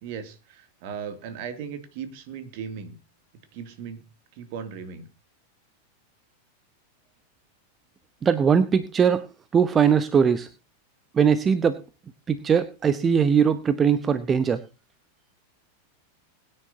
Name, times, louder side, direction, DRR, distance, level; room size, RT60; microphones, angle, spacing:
voice 1, 0.0-3.0 3.5-4.0 4.4-5.1, right 7 dB, 45° right, 8 dB, 2.5 m, -37 dB
voice 2, 8.2-9.2 9.5-10.5 11.1-11.8 12.3-14.6, right 7 dB, 20° right, 14 dB, 0.8 m, -20 dB
21.5 x 9.9 x 2.8 m, 0.29 s
figure-of-eight pair, 90°, 0 cm